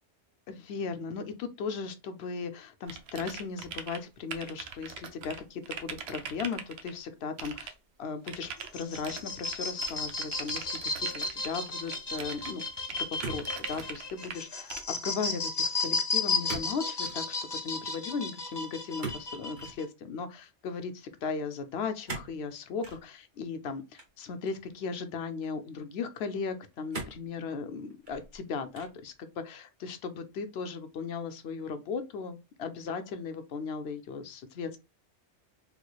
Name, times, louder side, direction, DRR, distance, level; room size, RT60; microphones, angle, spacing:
voice 1, 0.5-7.7 8.0-12.6 13.3-17.4 17.6-20.9 21.2-34.8, left 5 dB, 65° left, 0.8 m, -37 dB
sound 1, 2.9-4.0 4.3-6.9 7.4-7.7 8.3-14.4 14.7-14.8, right 6 dB, 70° right, 0.8 m, -42 dB
sound 2, 8.6-19.8, left 4 dB, 30° left, 0.5 m, -34 dB
sound 3, 13.2-14.0 14.3-14.7 16.5-16.7 17.0-17.2 19.0-19.8 22.1-22.4 22.8-23.0 24.0-24.7 25.4-25.5 26.9-27.3 27.9-28.4 28.7-29.1, right 4 dB, 45° right, 1.2 m, -40 dB
3.6 x 3.1 x 2.3 m
omnidirectional pair, 1.2 m